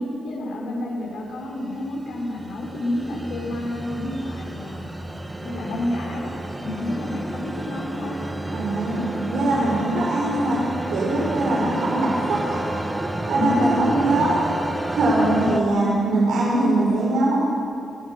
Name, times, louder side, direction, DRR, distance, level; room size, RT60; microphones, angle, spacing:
voice 1, 0.0-5.2 5.4-6.3 6.6-8.2 13.3-14.0, left 1 dB, 90° left, -4 dB, 5.9 m, -29 dB
sound 1, 1.5-15.6, right 1 dB, 10° right, 1.3 m, -31 dB
voice 2, 8.5-10.6 10.9-12.6 13.3-14.4 14.9-17.4, right 2 dB, 75° right, -4 dB, 5.0 m, -22 dB
26.0 x 18.5 x 6.7 m, 2.6 s
wide cardioid pair, 165°, 0 cm